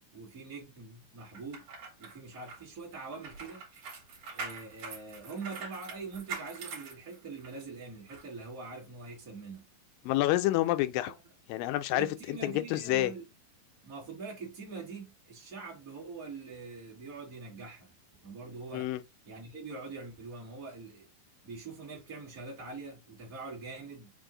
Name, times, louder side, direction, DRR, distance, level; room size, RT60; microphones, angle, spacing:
voice 1, 0.0-1.7 2.0-3.6 4.3-9.6 11.9-13.2 13.8-17.9 18.2-18.9 19.2-21.1 21.4-24.1, right 4 dB, 40° right, 1.3 m, -44 dB
sound 1, 1.3-7.6 8.1-8.2, right 5 dB, 55° right, 2.3 m, -44 dB
voice 2, 10.1-11.1 11.5-13.1 18.7-19.0, left 16 dB, 80° left, 2.2 m, -28 dB
5.3 x 2.5 x 3.7 m
omnidirectional pair, 4.1 m